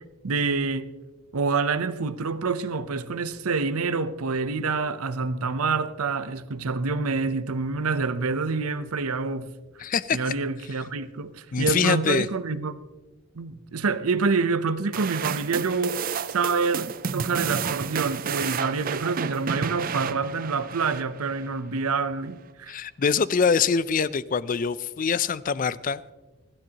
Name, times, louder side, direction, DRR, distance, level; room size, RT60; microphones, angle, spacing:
voice 1, 0.2-0.9 1.3-9.5 10.1-12.8 13.4-16.0 16.3-22.7, right 4 dB, 85° right, 0.7 m, -27 dB
voice 2, 9.8-10.3 11.5-12.3 22.7-26.1, left 6 dB, 40° left, 0.4 m, -24 dB
sound 1, 14.9-21.5, right 6 dB, 40° right, 0.4 m, -31 dB
26.0 x 12.0 x 2.9 m
head